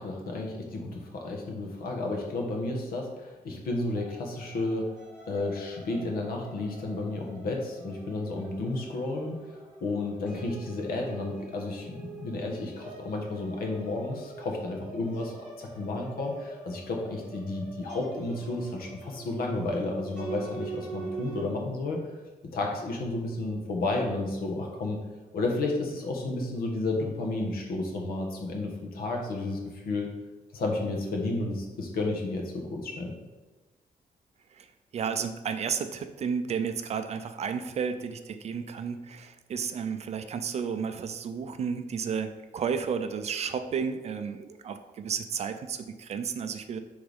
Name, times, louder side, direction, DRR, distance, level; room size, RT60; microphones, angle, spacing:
voice 1, 0.0-4.9 5.3-9.4 9.8-22.0 22.5-25.0 25.3-30.1 30.5-33.2, left 2 dB, 75° left, 1 dB, 1.4 m, -32 dB
sound 1, 3.9-21.5, right 4 dB, 5° right, 1.9 m, -44 dB
voice 2, 34.5-46.8, right 6 dB, 45° right, 8 dB, 0.4 m, -32 dB
10.0 x 3.5 x 3.5 m, 1.2 s
wide cardioid pair, 180°, 15 cm